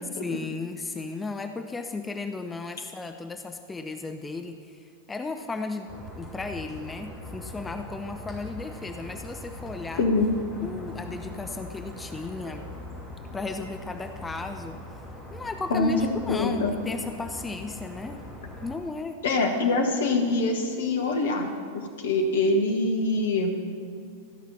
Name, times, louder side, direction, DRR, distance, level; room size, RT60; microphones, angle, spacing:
voice 1, 0.2-10.1 10.6-12.7 13.3-14.8 15.3-18.2 18.6-19.2, left 3 dB, 10° left, 7 dB, 0.6 m, -35 dB
sound 1, 5.9-18.8, left 1 dB, 5° right, 2.8 m, -41 dB
voice 2, 10.0-10.3 15.7-15.9 16.3-16.7 19.2-21.5 21.7-23.5, left 3 dB, 60° left, 4 dB, 1.4 m, -24 dB
14.5 x 5.8 x 6.9 m, 2.2 s
figure-of-eight pair, 90°, 0 cm